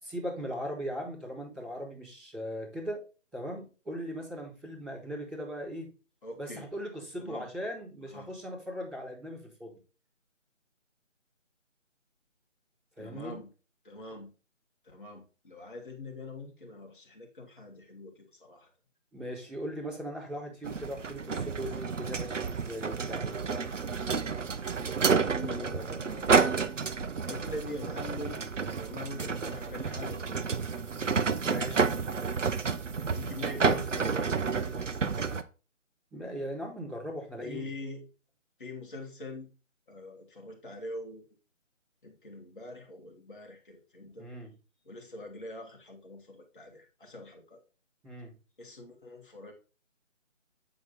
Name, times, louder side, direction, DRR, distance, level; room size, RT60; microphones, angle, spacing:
voice 1, 0.0-3.0 3.3-5.9 6.3-9.7 13.0-13.4 19.1-23.7 24.1-24.5 25.4-25.8 31.4-31.9 36.1-37.7 44.2-44.5 48.0-48.3, equal, 5° right, -12 dB, 2.1 m, -39 dB
voice 2, 6.2-6.7 7.2-7.5 8.1-8.3 13.0-13.5 13.8-14.3 14.8-18.7 25.3-26.7 27.3-30.6 33.1-35.3 37.4-38.0 38.6-39.5 39.9-41.2 42.0-44.3 44.9-47.6 48.6-49.5, left 2 dB, 40° left, 1 dB, 2.2 m, -43 dB
sound 1, 20.6-35.4, right 5 dB, 70° right, 0.8 m, -30 dB
8.8 x 4.6 x 4.2 m, 0.34 s
figure-of-eight pair, 165°, 39 cm